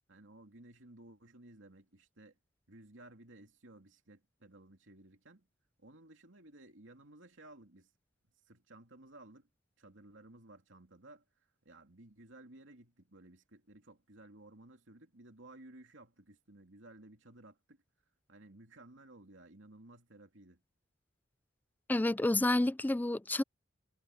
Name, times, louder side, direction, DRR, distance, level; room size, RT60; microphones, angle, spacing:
voice 1, 0.1-2.4 2.7-5.5 5.8-7.9 8.5-9.5 9.8-11.2 11.6-17.8 18.3-20.6, right 2 dB, 70° right, 3.0 m, -56 dB
voice 2, 21.9-23.4, left 2 dB, 10° left, 0.3 m, -29 dB
head